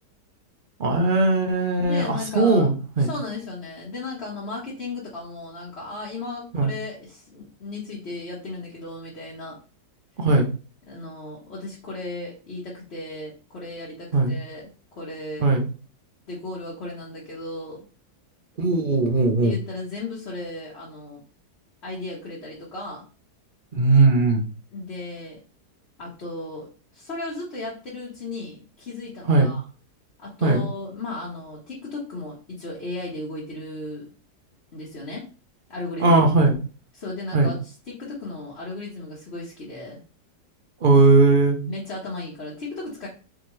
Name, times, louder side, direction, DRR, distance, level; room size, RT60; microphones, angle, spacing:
voice 1, 0.8-3.1 6.5-6.7 10.2-10.5 14.1-14.4 15.4-15.6 18.6-19.5 23.7-24.4 29.2-29.5 30.4-30.7 36.0-36.6 37.3-37.5 40.8-41.6, right 3 dB, 50° right, 2 dB, 0.6 m, -19 dB
voice 2, 1.8-2.7 3.0-9.6 10.9-15.5 16.3-17.8 19.4-21.2 21.8-23.0 24.7-25.4 26.0-29.6 30.2-34.1 34.7-35.2 35.7-36.2 36.9-40.0 41.7-43.1, left 2 dB, 40° left, -5 dB, 1.4 m, -35 dB
4.2 x 3.7 x 3.1 m, 0.36 s
omnidirectional pair, 1.8 m